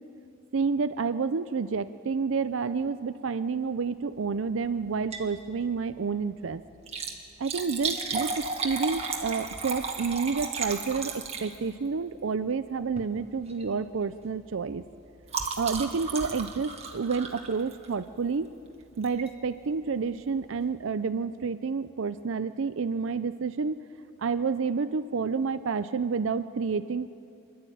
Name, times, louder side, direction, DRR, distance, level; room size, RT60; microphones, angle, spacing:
voice 1, 0.5-6.6 7.4-14.8 15.6-18.5 19.0-23.8 24.2-27.1, right 5 dB, 65° right, 12 dB, 0.5 m, -29 dB
Liquid, 4.9-5.4 5.7-5.8 6.7-11.9 12.9-13.1 13.5-13.7 14.0-18.1 19.0-19.3 19.8-19.9 20.1-20.2, right 4 dB, 30° right, 1.7 m, -34 dB
26.0 x 12.0 x 9.1 m, 2.5 s
head